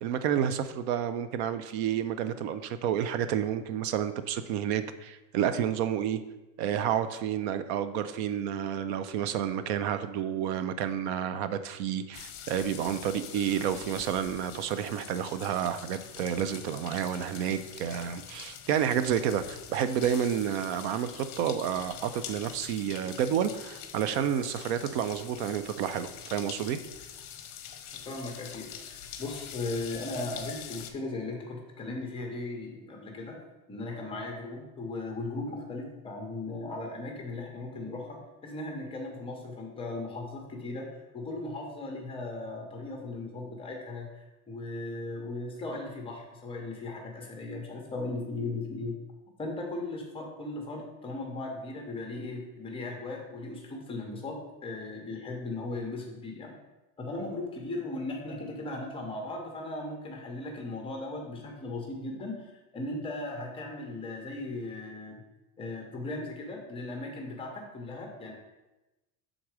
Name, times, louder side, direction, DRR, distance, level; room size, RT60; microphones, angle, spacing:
voice 1, 0.0-6.2 6.6-26.8, right 9 dB, 50° right, 12 dB, 0.4 m, -30 dB
sound 1, 12.1-30.9, left 9 dB, 45° left, 0.7 m, -45 dB
voice 2, 27.9-33.4 33.7-40.9 41.1-49.0 49.4-56.5 57.0-62.5 62.7-65.2 65.6-68.3, left 2 dB, 15° left, 1 dB, 0.7 m, -37 dB
6.1 x 3.8 x 4.7 m, 1.0 s
supercardioid pair, 160°, 44 cm